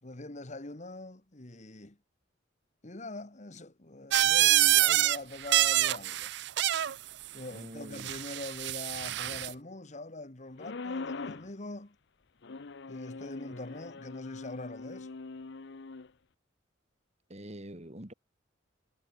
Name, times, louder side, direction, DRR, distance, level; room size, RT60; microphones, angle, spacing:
voice 1, 0.0-2.0 2.8-6.3 7.3-11.9 12.9-15.1, left 2 dB, 35° left, 1.7 m, -43 dB
sound 1, 4.1-5.2 5.4-7.0 8.0-9.5, right 14 dB, 60° right, 0.4 m, -26 dB
voice 2, 7.5-8.1 17.3-18.1, right 1 dB, 35° right, 3.0 m, -45 dB
sound 2, 10.6-11.5 12.4-16.1, left 3 dB, 60° left, 0.7 m, -42 dB
head